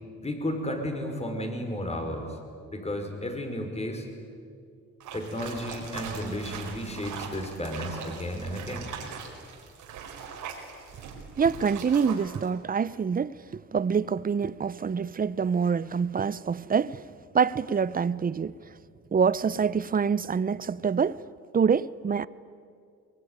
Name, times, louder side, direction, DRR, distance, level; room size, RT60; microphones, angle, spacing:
voice 1, 0.2-2.3 2.7-4.1 5.1-8.9, left 1 dB, 20° left, 5.3 m, -33 dB
sound 1, 5.0-12.5, right 6 dB, 85° right, 4.8 m, -41 dB
voice 2, 11.4-17.1 17.3-18.6 19.1-21.2 21.5-22.3, right 6 dB, 30° right, 0.7 m, -26 dB
23.5 x 21.5 x 9.6 m
cardioid pair, 90°, 30 cm